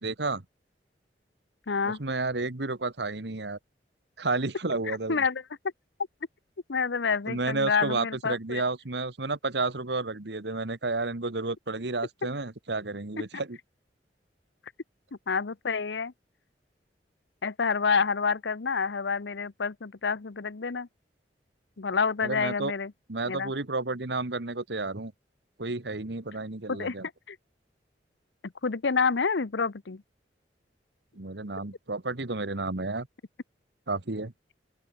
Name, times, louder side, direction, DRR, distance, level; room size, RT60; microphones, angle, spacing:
voice 1, 0.0-0.4 1.8-3.6 4.2-5.2 7.3-13.6 22.2-22.7 23.1-25.1 25.6-27.1 31.1-33.1 33.9-34.3, right 3 dB, 70° right, 1.6 m, -31 dB
voice 2, 1.7-2.0 4.9-5.4 6.7-8.6 15.3-16.1 17.4-20.9 21.8-22.9 23.3-23.5 26.7-26.9 27.3-27.4 28.4-30.0, left 5 dB, 90° left, 0.8 m, -28 dB
open air
head